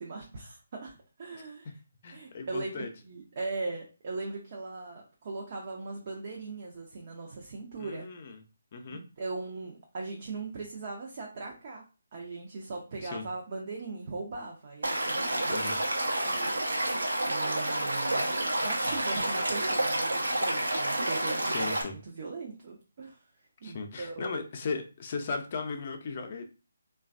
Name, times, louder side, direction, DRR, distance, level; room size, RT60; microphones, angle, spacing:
voice 1, 0.0-1.7 2.1-8.1 8.9-11.8 12.1-15.5 16.0-16.5 17.2-21.7 22.1-23.3 23.6-24.4, right 3 dB, 45° right, -1 dB, 0.6 m, -39 dB
voice 2, 2.0-2.9 7.8-8.4 8.7-9.0 13.0-13.3 15.5-15.8 21.4-22.0 23.6-26.4, left 4 dB, 40° left, 5 dB, 0.5 m, -37 dB
Stream / Liquid, 14.8-21.8, right 1 dB, 75° right, 0.8 m, -29 dB
3.1 x 2.3 x 2.4 m, 0.33 s
figure-of-eight pair, 150°, 0 cm